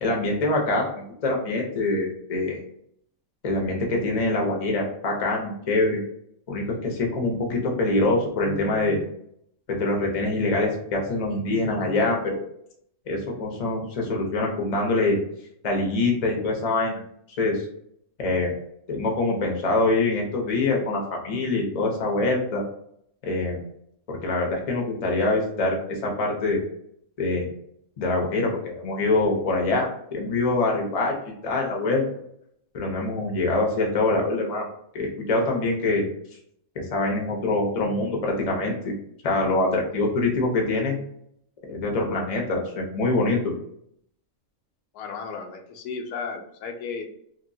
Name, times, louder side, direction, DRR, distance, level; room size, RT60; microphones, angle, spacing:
voice 1, 0.0-2.6 3.4-6.0 6.5-9.0 9.7-12.4 13.1-15.2 15.6-17.0 17.4-17.6 18.2-18.5 18.9-22.6 23.2-23.7 24.1-26.6 27.2-27.5 28.0-31.1 31.4-32.0 32.7-34.7 34.9-36.0 36.7-38.9 39.2-41.0 41.7-43.4, left 2 dB, 40° left, 0 dB, 0.5 m, -24 dB
voice 2, 44.9-47.0, left 5 dB, 90° left, 3 dB, 1.1 m, -34 dB
2.9 x 2.7 x 2.6 m, 0.71 s
omnidirectional pair, 1.6 m